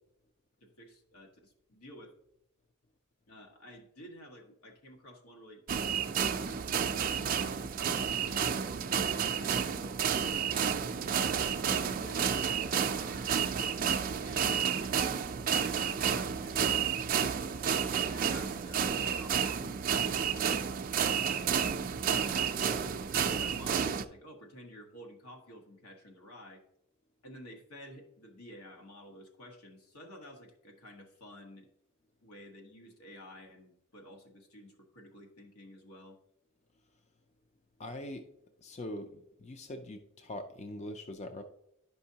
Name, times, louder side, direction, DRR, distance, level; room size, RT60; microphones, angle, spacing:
voice 1, 0.6-2.1 3.3-7.2 8.1-8.7 9.4-13.4 14.2-17.0 17.6-20.5 21.1-21.6 22.0-26.6 27.2-31.7 32.2-36.2, equal, 80° left, 2 dB, 1.4 m, -52 dB
sound 1, 5.7-24.0, right 7 dB, 40° right, 0.4 m, -31 dB
voice 2, 37.8-38.2 38.6-41.4, left 1 dB, 30° left, 7 dB, 0.4 m, -42 dB
11.0 x 5.3 x 2.8 m, 0.80 s
head